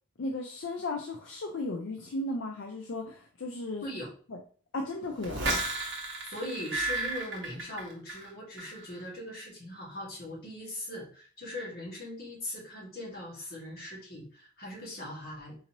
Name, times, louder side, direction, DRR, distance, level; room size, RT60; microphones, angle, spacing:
voice 1, 0.2-3.9 4.3-4.4 4.7-5.5, left 2 dB, 70° left, 2 dB, 0.5 m, -35 dB
sound 1, 5.2-8.3 8.6-9.0, right 2 dB, 70° right, 1.0 m, -33 dB
voice 2, 6.2-15.6, left 1 dB, 50° left, -4 dB, 1.6 m, -40 dB
3.9 x 2.9 x 2.9 m, 0.41 s
head